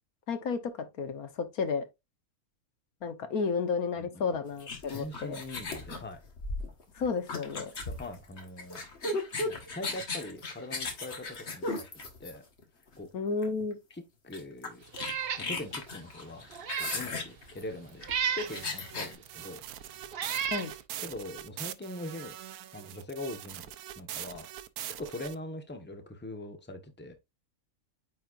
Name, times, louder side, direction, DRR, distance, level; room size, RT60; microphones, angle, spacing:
voice 1, 0.3-1.8 3.0-5.4 6.9-7.7 13.1-13.8 20.5-20.7, left 5 dB, 75° left, 1.5 m, -32 dB
voice 2, 4.0-4.4 4.9-6.2 7.8-8.8 9.3-11.9 12.2-12.4 13.0-13.1 13.9-14.8 15.5-16.5 16.8-19.6 21.0-22.4 22.7-23.7 24.0-24.5 24.9-27.1, left 1 dB, 10° left, 1.1 m, -42 dB
sound 1, 4.6-12.6 13.4-13.6 13.9-14.0 14.3-19.1, left 3 dB, 50° left, 1.8 m, -36 dB
Meow, 15.0-15.5 15.9-16.0 16.5-17.1 18.0-18.6 19.4-19.5 20.1-20.7, right 8 dB, 50° right, 0.8 m, -32 dB
sound 2, 18.5-25.4, right 11 dB, 85° right, 1.2 m, -43 dB
9.2 x 4.4 x 2.5 m
omnidirectional pair, 1.6 m